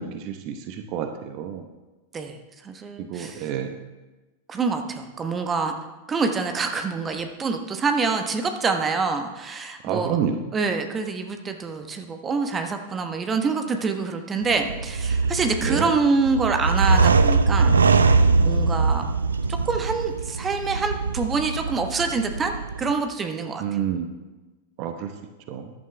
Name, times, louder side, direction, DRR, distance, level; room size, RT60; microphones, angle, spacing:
voice 1, 0.0-1.7 3.1-3.7 9.8-10.4 15.6-15.9 23.6-24.1 24.8-25.1 25.5-25.7, right 8 dB, 40° right, 6 dB, 1.0 m, -28 dB
voice 2, 2.1-3.5 4.5-5.7 6.1-10.2 10.5-17.8 18.4-19.1 19.5-23.6, right 4 dB, 20° right, 6 dB, 1.1 m, -26 dB
sound 1, 14.4-22.9, right 4 dB, 75° right, 0.5 m, -22 dB
14.5 x 11.0 x 3.3 m, 1.1 s
figure-of-eight pair, 90°, 0 cm